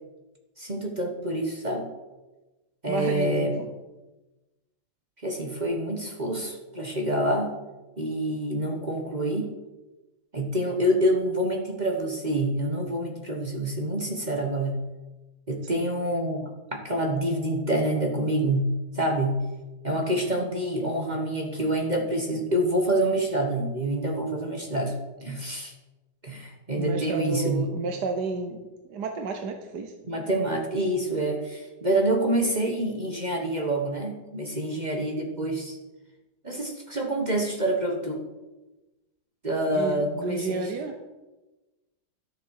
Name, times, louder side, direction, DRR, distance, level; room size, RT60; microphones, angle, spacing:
voice 1, 0.6-1.9 2.8-3.7 5.2-7.6 8.0-9.5 10.3-14.8 15.5-19.4 19.8-25.7 26.2-27.7 30.1-35.8 36.4-38.2 39.4-40.7, right 1 dB, 25° right, 2 dB, 1.2 m, -27 dB
voice 2, 2.9-3.7 15.6-15.9 26.8-29.9 39.7-41.0, right 3 dB, 65° right, 5 dB, 1.4 m, -31 dB
13.0 x 6.9 x 6.4 m, 1.1 s
omnidirectional pair, 2.0 m